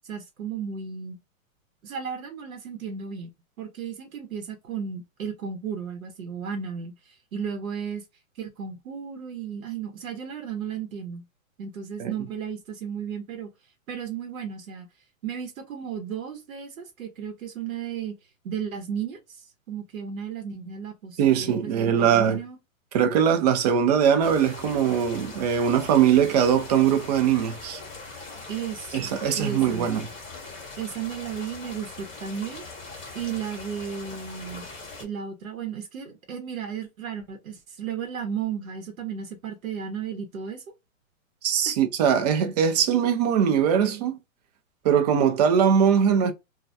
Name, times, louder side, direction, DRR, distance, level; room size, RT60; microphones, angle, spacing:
voice 1, 0.0-1.2 1.8-3.3 3.6-8.0 8.4-11.2 11.6-13.5 13.9-14.9 15.2-18.2 18.4-22.6 28.5-29.9 30.8-32.6 33.1-34.6 35.0-40.6 41.7-41.8, right 7 dB, 80° right, 0.9 m, -34 dB
voice 2, 21.2-22.4 22.9-27.8 28.9-30.1 41.4-44.2 44.8-46.3, right 8 dB, 30° right, 0.4 m, -21 dB
sound 1, 24.2-35.0, left 3 dB, 15° left, 0.7 m, -41 dB
2.3 x 2.2 x 2.5 m
hypercardioid pair, 140°, 41 cm